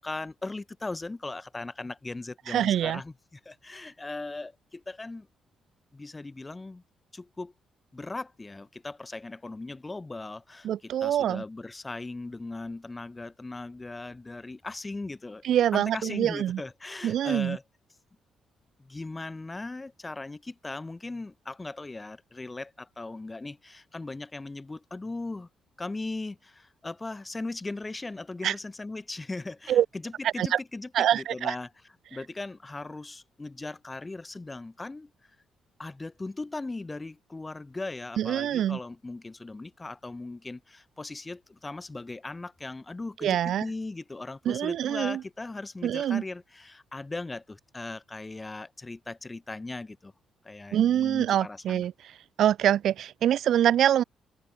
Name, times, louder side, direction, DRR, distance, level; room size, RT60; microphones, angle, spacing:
voice 1, 0.0-5.3 5.9-6.8 7.1-7.5 7.9-15.4 15.7-17.6 18.8-25.5 25.8-31.7 32.1-35.1 35.8-50.1 50.4-51.9, left 2 dB, 20° left, 0.9 m, -38 dB
voice 2, 2.5-3.0 10.6-11.4 15.4-16.6 17.0-17.6 28.4-28.5 29.7-29.9 30.2-30.6 30.9-31.6 38.2-38.8 43.2-43.6 44.5-45.2 45.8-46.2 50.7-51.9 52.4-54.0, right 10 dB, 70° right, 0.8 m, -25 dB
open air
cardioid pair, 90°, 0 cm